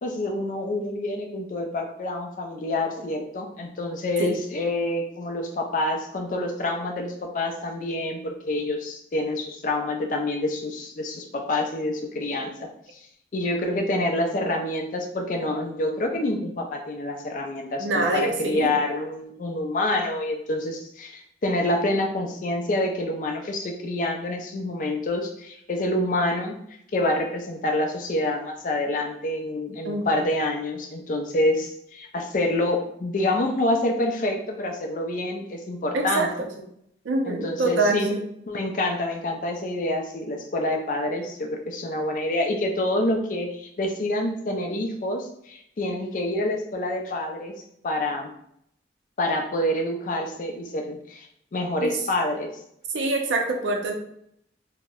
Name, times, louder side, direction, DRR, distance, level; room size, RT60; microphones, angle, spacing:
voice 1, 0.0-13.0 13.3-26.6 26.9-36.3 37.3-38.2 38.5-47.5 47.8-48.3 49.2-52.5, left 1 dB, 45° left, 2 dB, 0.3 m, -27 dB
voice 2, 17.8-18.7 29.8-30.2 35.9-36.5 37.0-38.2 51.8-52.0 52.9-54.0, right 2 dB, 80° right, 3 dB, 0.4 m, -25 dB
2.7 x 2.0 x 2.3 m, 0.72 s
head